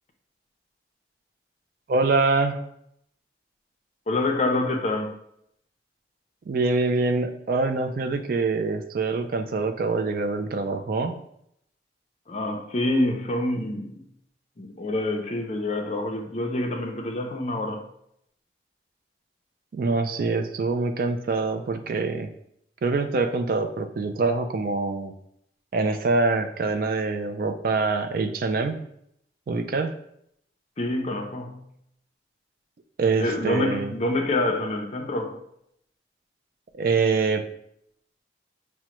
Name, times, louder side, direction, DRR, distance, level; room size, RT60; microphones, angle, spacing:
voice 1, 1.9-2.6 6.5-11.2 19.7-22.3 22.8-25.1 25.7-28.9 29.5-29.9 33.0-33.9 36.8-37.4, right 3 dB, 50° right, 8 dB, 0.3 m, -25 dB
voice 2, 4.1-5.1 12.3-14.0 14.6-17.8 30.8-31.6 33.2-35.4, left 2 dB, 35° left, 3 dB, 0.5 m, -26 dB
5.9 x 2.1 x 2.9 m, 0.73 s
head